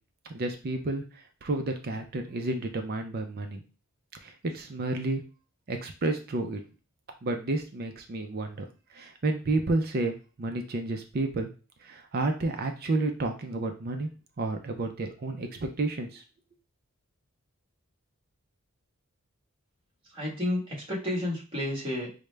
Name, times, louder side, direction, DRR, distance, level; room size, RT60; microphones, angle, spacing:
voice 1, 0.3-3.6 4.2-5.2 5.7-6.6 7.2-8.6 8.9-11.5 11.8-14.1 14.4-16.2, right 2 dB, 45° right, 5 dB, 0.4 m, -31 dB
voice 2, 20.1-22.1, left 1 dB, 25° right, -4 dB, 1.4 m, -31 dB
4.8 x 2.1 x 3.3 m, 0.35 s
head